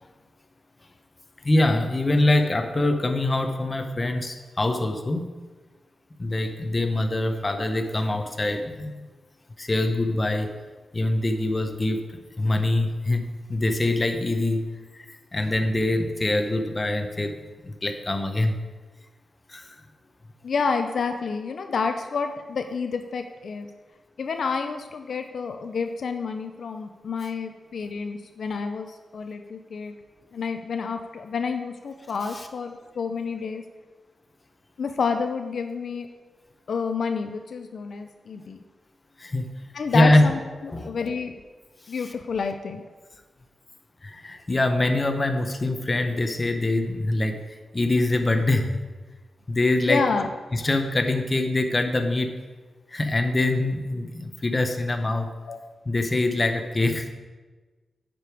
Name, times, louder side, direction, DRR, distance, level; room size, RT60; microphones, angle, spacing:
voice 1, 1.4-5.2 6.2-8.9 9.6-10.5 10.9-12.0 12.4-14.7 14.9-15.1 15.3-17.3 17.6-18.6 19.5-19.8 39.2-39.5 39.9-40.3 40.7-40.9 44.0-47.4 47.7-48.9 49.5-50.0 50.5-52.3 52.9-55.3 55.9-57.1, left 2 dB, 25° left, 6 dB, 0.8 m, -24 dB
voice 2, 20.4-23.7 24.2-29.9 30.3-33.6 34.8-36.1 36.7-38.6 39.7-41.3 41.9-42.8 49.9-50.3 55.5-55.6, left 5 dB, 65° left, 6 dB, 0.5 m, -29 dB
9.5 x 5.2 x 4.6 m, 1.3 s
wide cardioid pair, 120°, 0 cm